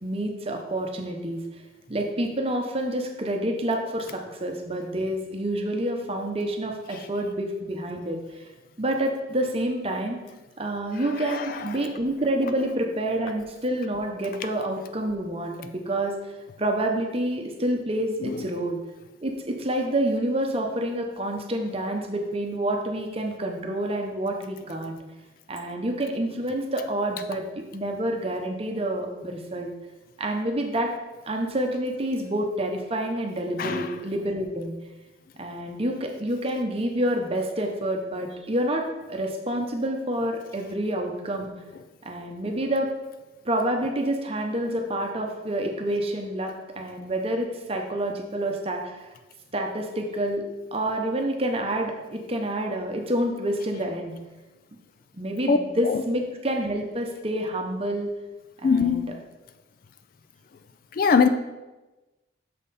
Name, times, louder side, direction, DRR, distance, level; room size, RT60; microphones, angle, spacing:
voice 1, 0.0-1.4 1.9-8.5 8.8-10.2 10.6-16.1 16.6-18.8 19.2-25.0 25.5-27.4 27.7-29.7 30.2-30.9 31.2-34.7 35.4-41.5 42.0-42.9 43.4-49.1 49.5-50.4 50.7-54.2 55.1-58.1 58.6-59.1, right 1 dB, 30° right, 3 dB, 0.8 m, -28 dB
voice 2, 11.3-11.7 18.2-18.4 33.6-33.9 55.5-55.6 55.8-56.0 58.6-59.1 60.9-61.3, left 5 dB, 45° left, 10 dB, 0.3 m, -22 dB
6.6 x 5.6 x 4.1 m, 1.1 s
head